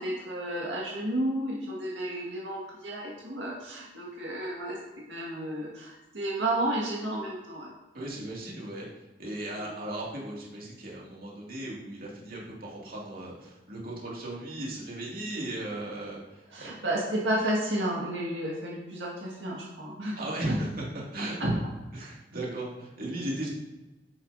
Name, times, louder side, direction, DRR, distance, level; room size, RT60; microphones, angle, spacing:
voice 1, 0.0-4.8 5.1-7.7 9.6-9.7 16.5-20.1 20.5-20.6 21.2-21.5, right 1 dB, 90° right, -4 dB, 1.8 m, -32 dB
voice 2, 7.9-8.9 9.2-16.7 20.2-20.9 21.1-21.5 21.9-23.5, right 1 dB, 55° right, -4 dB, 2.4 m, -36 dB
8.7 x 8.0 x 2.7 m, 1.1 s
head